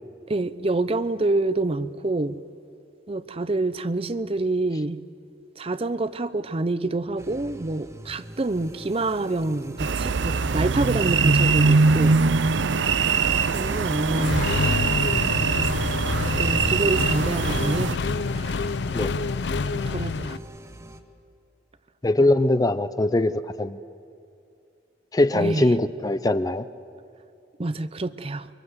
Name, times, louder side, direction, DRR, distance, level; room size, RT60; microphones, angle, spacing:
voice 1, 0.3-2.4 3.1-5.0 5.6-12.2 13.5-14.5 16.2-17.9 18.3-18.6 19.7-20.4 25.3-25.7 27.6-28.5, right 2 dB, 30° right, 14 dB, 0.6 m, -27 dB
sound 1, 7.2-21.0, right 1 dB, 15° right, 1.1 m, -42 dB
sound 2, 9.8-18.0, right 4 dB, 75° right, 0.7 m, -22 dB
Accelerating revving vroom, 14.2-20.4, left 4 dB, 65° left, 0.5 m, -27 dB
voice 2, 22.0-23.8 25.1-26.6, left 1 dB, 20° left, 13 dB, 0.5 m, -21 dB
24.0 x 23.0 x 8.0 m, 2.6 s
head